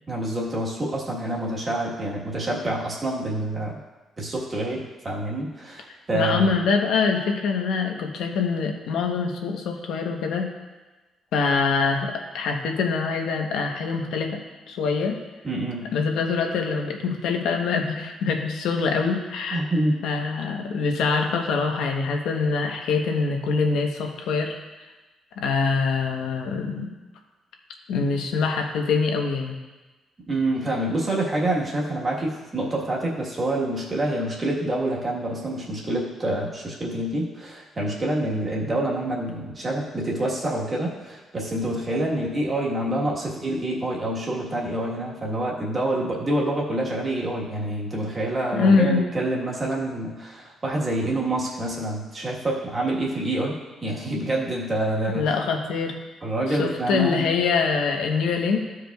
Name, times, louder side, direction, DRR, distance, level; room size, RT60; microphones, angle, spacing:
voice 1, 0.1-3.8 4.2-6.5 15.4-15.9 19.5-19.9 30.3-55.3 56.2-57.3, right 1 dB, 20° right, -3 dB, 1.3 m, -27 dB
voice 2, 6.1-10.5 11.3-14.4 14.7-15.2 15.9-19.6 20.0-24.6 25.4-26.9 27.9-29.6 48.5-49.0 55.1-55.9 56.5-58.6, left 4 dB, 85° left, 3 dB, 0.9 m, -24 dB
14.5 x 4.9 x 2.3 m, 1.2 s
cardioid pair, 170°, 0 cm